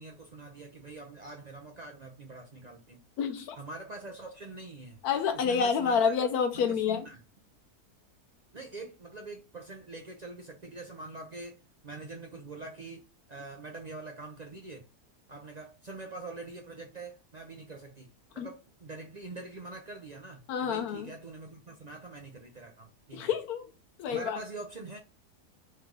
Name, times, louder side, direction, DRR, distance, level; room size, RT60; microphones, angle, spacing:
voice 1, 0.0-3.0 3.6-5.0 5.3-6.1 6.5-7.2 8.5-13.0 13.3-14.8 15.3-18.1 18.3-23.3 24.1-25.0, right 3 dB, 65° right, 0.4 m, -44 dB
voice 2, 3.2-3.6 5.0-7.1 18.4-18.5 20.5-21.1 23.1-23.7 24.0-24.4, left 6 dB, 75° left, 1.1 m, -28 dB
3.4 x 3.1 x 3.6 m
omnidirectional pair, 1.7 m